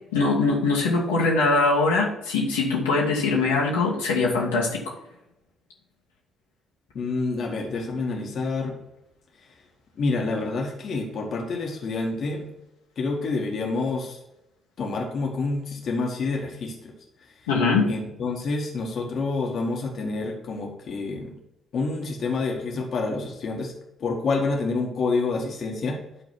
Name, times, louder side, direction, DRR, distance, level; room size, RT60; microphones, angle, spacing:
voice 1, 0.1-4.9 17.5-17.9, left 3 dB, 75° left, -4 dB, 1.6 m, -22 dB
voice 2, 6.9-8.8 9.9-12.5 13.0-14.2 14.8-16.9 17.9-21.3 21.7-23.7 24.0-26.0, left 3 dB, 50° left, 0 dB, 1.6 m, -28 dB
11.5 x 3.8 x 6.0 m, 0.85 s
figure-of-eight pair, 45°, 0 cm